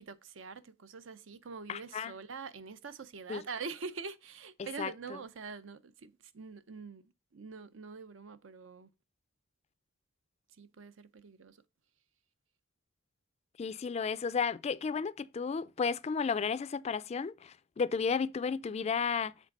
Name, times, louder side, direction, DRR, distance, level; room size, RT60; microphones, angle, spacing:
voice 1, 0.0-7.0 7.3-8.9 10.6-11.6, right 5 dB, 80° right, 0.6 m, -45 dB
voice 2, 1.7-2.1 3.3-3.4 4.6-5.2 13.6-19.3, left 5 dB, 35° left, 0.3 m, -33 dB
7.3 x 3.5 x 5.3 m
head